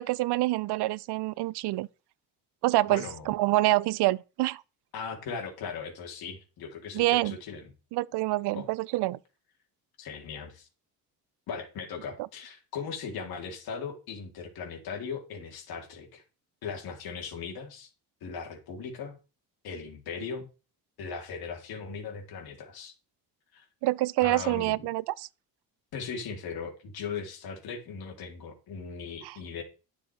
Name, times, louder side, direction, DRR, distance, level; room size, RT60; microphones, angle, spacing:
voice 1, 0.0-1.9 2.6-4.6 6.9-7.4 7.9-9.2 23.8-25.3 29.2-29.3, right 18 dB, 85° right, 0.6 m, -26 dB
voice 2, 2.8-3.3 4.9-7.7 8.5-8.7 10.0-10.7 11.5-16.2 16.6-17.9 18.2-19.2 19.6-20.5 21.0-22.9 23.5-23.6 24.2-24.9 25.9-29.6, left 5 dB, 70° left, 3.2 m, -38 dB
11.0 x 6.9 x 4.7 m
cardioid pair, 140°, 39 cm